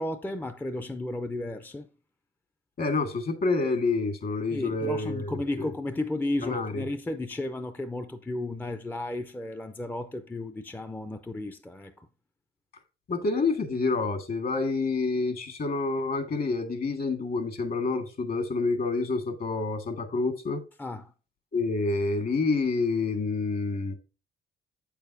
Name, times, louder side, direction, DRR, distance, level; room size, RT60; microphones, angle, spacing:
voice 1, 0.0-1.9 4.5-12.1 20.8-21.1, left 2 dB, 10° left, 0.5 m, -33 dB
voice 2, 2.8-5.7 6.4-6.8 13.1-20.6 21.5-23.9, left 3 dB, 50° left, 1.7 m, -28 dB
7.9 x 6.8 x 2.6 m
cardioid pair, 90°, 20 cm